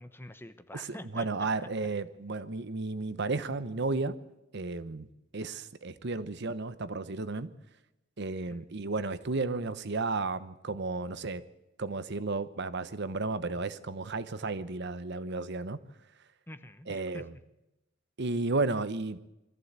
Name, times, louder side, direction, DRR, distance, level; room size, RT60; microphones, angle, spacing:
voice 1, 0.0-1.5 8.5-8.7 16.5-17.4, left 1 dB, 10° left, 11 dB, 0.9 m, -46 dB
voice 2, 1.1-4.1 4.5-5.1 5.3-7.5 8.2-11.4 11.8-15.8 16.9-17.2 18.2-19.2, right 3 dB, 60° right, 14 dB, 0.9 m, -33 dB
22.5 x 14.5 x 8.1 m, 0.93 s
head